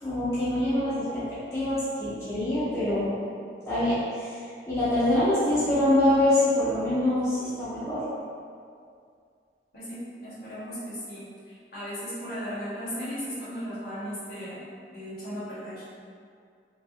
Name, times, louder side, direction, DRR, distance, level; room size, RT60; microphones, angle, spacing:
voice 1, 0.0-3.1 3.7-4.3 4.6-8.0, left 1 dB, 15° left, -13 dB, 0.7 m, -25 dB
voice 2, 9.7-14.6 14.9-15.9, equal, 60° left, -11 dB, 1.2 m, -36 dB
3.3 x 2.3 x 2.6 m, 2.3 s
head